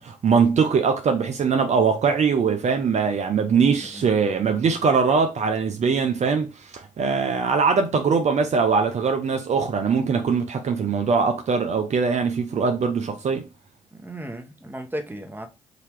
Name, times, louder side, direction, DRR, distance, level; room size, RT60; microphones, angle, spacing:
voice 1, 0.0-13.5, right 5 dB, 55° right, 0.6 m, -22 dB
voice 2, 13.9-15.5, right 1 dB, 15° right, 1.2 m, -35 dB
4.0 x 2.8 x 4.7 m
supercardioid pair, 50°, 14 cm